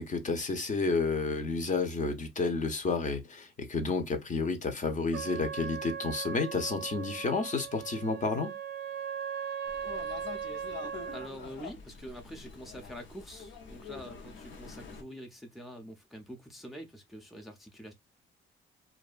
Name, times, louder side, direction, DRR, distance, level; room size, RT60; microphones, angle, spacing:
voice 1, 0.0-8.5, left 4 dB, 40° left, 0.7 m, -31 dB
Trumpet, 5.1-11.3, right 7 dB, 60° right, 0.5 m, -38 dB
sound 1, 9.6-15.0, left 6 dB, 75° left, 0.8 m, -46 dB
voice 2, 11.1-17.9, equal, ahead, 0.5 m, -46 dB
2.6 x 2.3 x 2.4 m
cardioid pair, 90°, 20 cm